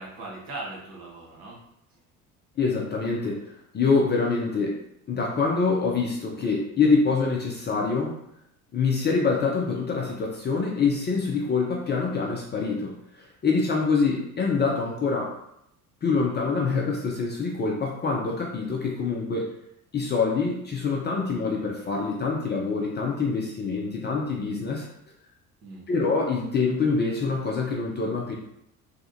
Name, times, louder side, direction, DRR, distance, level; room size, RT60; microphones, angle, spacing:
voice 1, 0.0-1.6 25.6-26.1, right 2 dB, 50° right, -3 dB, 1.3 m, -39 dB
voice 2, 2.6-4.8 5.1-8.1 8.7-15.4 16.0-19.5 19.9-24.9 25.9-28.3, left 4 dB, 25° left, -2 dB, 0.5 m, -25 dB
3.2 x 2.4 x 2.7 m, 0.77 s
figure-of-eight pair, 65°, 46 cm